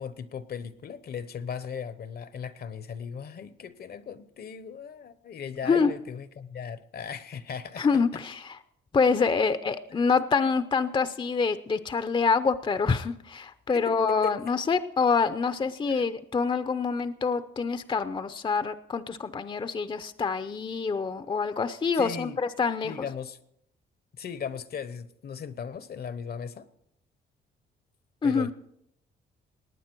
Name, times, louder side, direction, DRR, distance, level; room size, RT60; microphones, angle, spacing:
voice 1, 0.0-8.2 9.6-10.0 13.7-14.4 15.9-16.0 21.9-22.4 22.8-23.4 24.1-26.7 28.2-28.5, left 7 dB, 50° left, 0.9 m, -38 dB
voice 2, 7.8-8.4 8.9-22.9 28.2-28.5, left 5 dB, 25° left, 0.6 m, -26 dB
18.5 x 9.2 x 4.6 m
cardioid pair, 90°, 20 cm